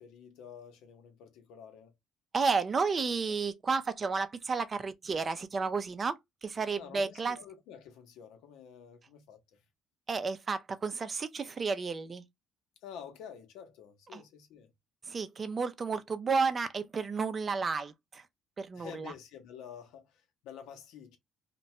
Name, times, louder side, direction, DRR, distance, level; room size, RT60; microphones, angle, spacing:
voice 1, 0.0-1.9 6.8-9.6 12.8-14.7 18.7-21.2, left 8 dB, 80° left, 0.7 m, -49 dB
voice 2, 2.3-7.4 10.1-12.2 14.1-14.2 15.1-18.2 18.6-19.1, right 4 dB, 30° right, 0.4 m, -32 dB
2.6 x 2.2 x 3.0 m
cardioid pair, 100°, 0 cm